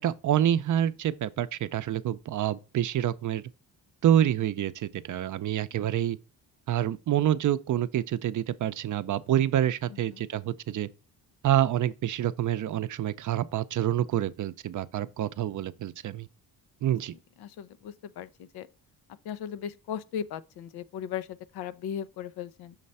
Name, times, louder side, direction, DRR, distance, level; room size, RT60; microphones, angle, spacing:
voice 1, 0.0-3.4 4.0-6.2 6.7-10.9 11.4-16.3 16.8-17.1, right 11 dB, 55° right, 0.5 m, -27 dB
voice 2, 9.9-10.3 17.4-18.7 19.2-22.8, left 9 dB, 90° left, 0.6 m, -37 dB
6.5 x 3.2 x 5.4 m
cardioid pair, 100°, 37 cm